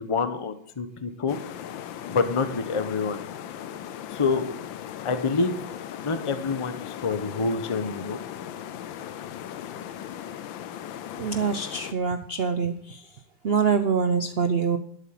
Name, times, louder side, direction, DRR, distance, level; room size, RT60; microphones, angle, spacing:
voice 1, 0.0-1.4 2.1-3.2 4.1-4.4 5.0-5.6 6.0-8.2, left 4 dB, 25° left, 9 dB, 0.6 m, -27 dB
sound 1, 1.3-11.9, left 10 dB, 80° left, 1.5 m, -38 dB
voice 2, 11.2-13.0 13.4-14.8, right 6 dB, 75° right, 9 dB, 0.5 m, -25 dB
12.5 x 8.4 x 5.8 m, 0.66 s
omnidirectional pair, 2.1 m